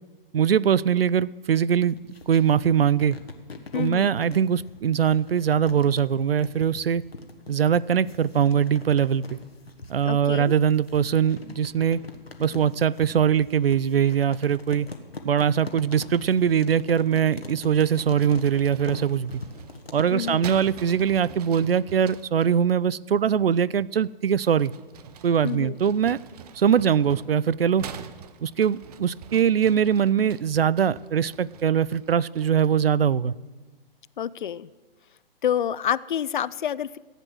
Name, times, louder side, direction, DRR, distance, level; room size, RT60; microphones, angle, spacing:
voice 1, 0.3-2.0 2.3-3.2 3.7-7.0 7.5-9.2 9.9-12.0 12.4-14.9 15.2-19.3 19.9-24.7 25.2-26.2 26.6-27.9 28.4-33.3, right 8 dB, 75° right, 21 dB, 0.5 m, -22 dB
sound 1, 1.8-20.9, left 3 dB, 85° left, 1.6 m, -42 dB
voice 2, 3.7-4.1 10.0-10.5 20.1-20.5 25.4-25.8 34.2-34.7 35.4-37.0, left 9 dB, 55° left, 20 dB, 0.5 m, -28 dB
sound 2, 17.7-22.5 24.3-32.9, right 8 dB, 40° right, 0.8 m, -45 dB
15.0 x 8.3 x 7.7 m, 1.3 s
figure-of-eight pair, 125°, 30 cm